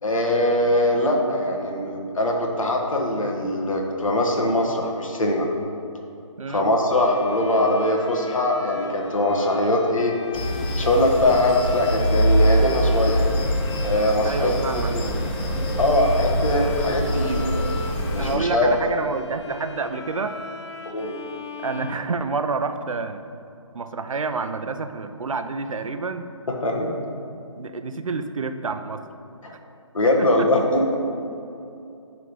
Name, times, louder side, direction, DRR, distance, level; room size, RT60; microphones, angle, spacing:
voice 1, 0.0-5.5 6.5-10.1 10.8-13.2 13.8-14.5 14.9-15.0 15.8-17.5 18.1-18.7 20.8-21.1 26.5-26.9 29.4-29.5 29.9-31.0, left 1 dB, 80° left, 0 dB, 1.5 m, -22 dB
voice 2, 6.4-6.7 14.2-15.3 18.2-20.4 21.6-23.2 23.7-26.3 27.6-29.0 30.2-30.5, right 4 dB, 85° right, 9 dB, 0.6 m, -28 dB
Bowed string instrument, 6.9-22.8, left 4 dB, 60° left, 0.9 m, -38 dB
sound 1, 10.3-18.4, right 1 dB, 20° left, 0.8 m, -24 dB
10.0 x 3.9 x 5.0 m, 2.7 s
hypercardioid pair, 155°, 17 cm